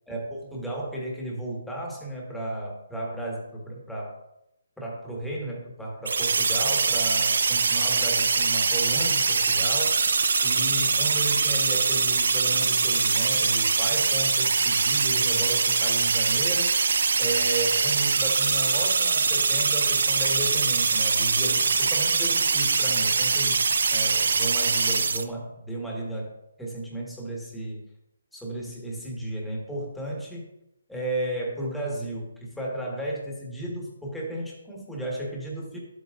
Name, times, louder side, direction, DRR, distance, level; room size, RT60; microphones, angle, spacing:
voice 1, 0.1-4.2 4.8-10.0 10.4-16.7 17.2-26.3 26.6-27.8 28.3-30.5 30.9-35.8, right 1 dB, ahead, -3 dB, 1.7 m, -34 dB
sound 1, 6.0-25.2, right 4 dB, 70° right, 0.6 m, -23 dB
11.0 x 8.1 x 2.6 m, 0.86 s
hypercardioid pair, 155°, 0 cm